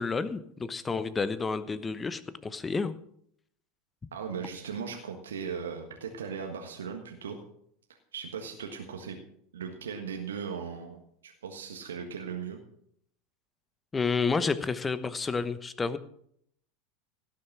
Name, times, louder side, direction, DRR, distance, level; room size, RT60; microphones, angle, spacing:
voice 1, 0.0-2.9 13.9-16.0, left 4 dB, 20° left, 14 dB, 1.0 m, -30 dB
voice 2, 4.1-7.4 8.1-9.2 9.5-12.6, right 6 dB, 75° right, 3 dB, 1.5 m, -38 dB
17.0 x 6.6 x 6.3 m, 0.69 s
figure-of-eight pair, 80°, 0 cm